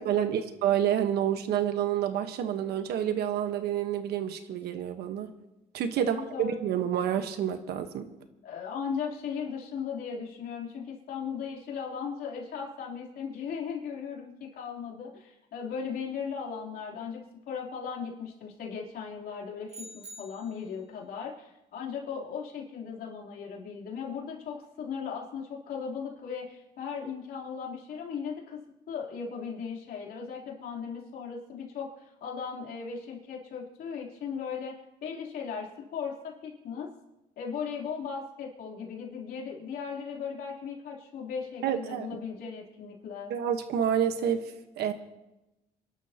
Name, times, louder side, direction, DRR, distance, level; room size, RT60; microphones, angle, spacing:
voice 1, 0.0-5.3 5.7-8.1 41.6-42.1 43.3-44.9, right 9 dB, 75° right, 8 dB, 1.3 m, -28 dB
voice 2, 6.0-6.6 8.4-19.9 20.2-28.6 28.9-34.8 35.0-36.9 37.4-43.3, left 6 dB, 65° left, -2 dB, 3.5 m, -37 dB
sound 1, 19.7-20.8, right 1 dB, 40° right, 1.8 m, -46 dB
28.0 x 12.0 x 3.0 m, 0.97 s
cardioid pair, 110°, 17 cm